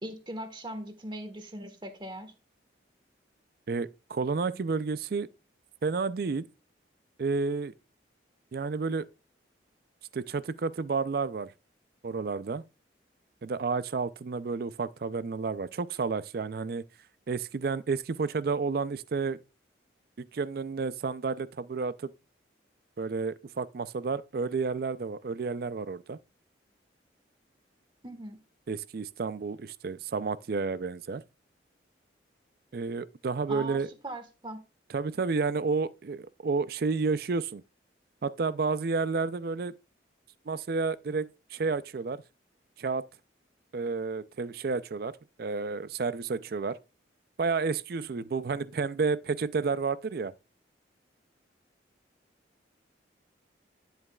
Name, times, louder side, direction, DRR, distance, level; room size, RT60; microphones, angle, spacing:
voice 1, 0.0-2.3 28.0-28.4 33.5-34.6, right 1 dB, 25° right, 1.3 m, -40 dB
voice 2, 3.7-5.3 5.8-6.5 7.2-7.7 8.5-9.1 10.1-11.5 12.0-12.6 13.4-16.8 17.3-19.4 20.3-21.9 23.0-26.2 28.7-31.2 32.7-33.9 34.9-37.6 38.2-39.7 40.5-42.2 42.8-43.0 43.7-45.1 45.4-46.8 47.4-50.3, right 4 dB, 55° right, 0.4 m, -31 dB
9.8 x 7.8 x 2.3 m
head